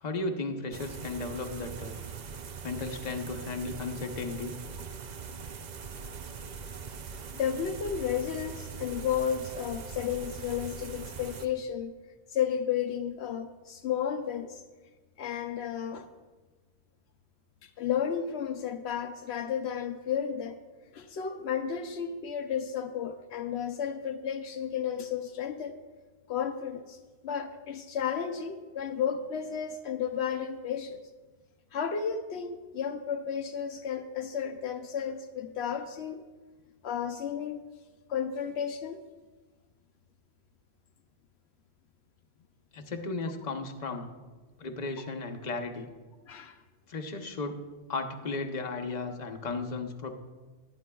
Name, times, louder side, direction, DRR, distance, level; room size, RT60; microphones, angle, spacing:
voice 1, 0.0-2.0 2.6-4.6 42.7-44.1 44.6-45.9 46.9-50.1, left 3 dB, 45° left, 4 dB, 1.0 m, -35 dB
sound 1, 0.7-11.5, right 6 dB, 50° right, 0.6 m, -42 dB
voice 2, 7.3-11.9 12.3-14.6 15.2-16.1 17.6-20.6 20.9-25.8 26.3-31.0 31.7-36.2 36.8-37.6 38.1-39.0 46.3-46.6, left 8 dB, 80° left, 6 dB, 0.9 m, -33 dB
21.5 x 9.7 x 2.3 m, 1.3 s
omnidirectional pair, 1.1 m